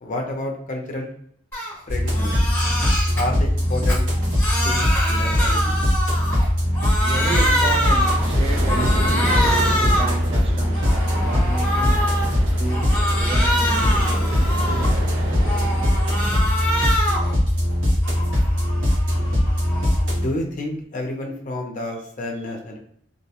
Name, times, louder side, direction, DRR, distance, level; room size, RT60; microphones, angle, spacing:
voice 1, 0.0-1.1 1.9-2.3 3.2-4.1 4.6-5.8 20.2-22.8, left 1 dB, 40° left, 1 dB, 0.6 m, -29 dB
Crying sobbing, 1.5-1.7 2.1-3.2 3.7-6.5 6.7-8.3 8.7-10.2 10.6-12.3 12.7-15.0 15.4-17.3 17.7-20.1, equal, 10° left, 0.9 m, -25 dB
sound 1, 1.9-20.2, left 1 dB, 65° right, 1.2 m, -21 dB
voice 2, 7.0-14.6 19.2-19.3 22.3-22.5, right 2 dB, 30° right, 1 dB, 0.4 m, -33 dB
sound 2, 7.1-16.5, right 1 dB, 85° right, 0.6 m, -31 dB
2.6 x 2.1 x 2.8 m, 0.68 s
head